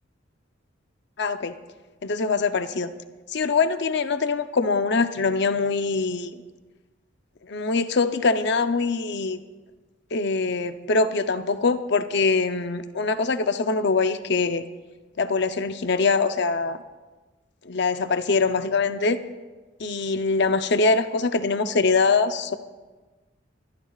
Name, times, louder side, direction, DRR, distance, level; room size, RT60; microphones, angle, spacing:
voice 1, 1.2-1.6 2.0-2.9 3.3-6.4 7.5-9.4 10.1-14.6 15.2-16.8 17.7-19.2 19.8-22.6, left 4 dB, 65° left, 9 dB, 0.7 m, -23 dB
24.0 x 13.5 x 2.4 m, 1.3 s
head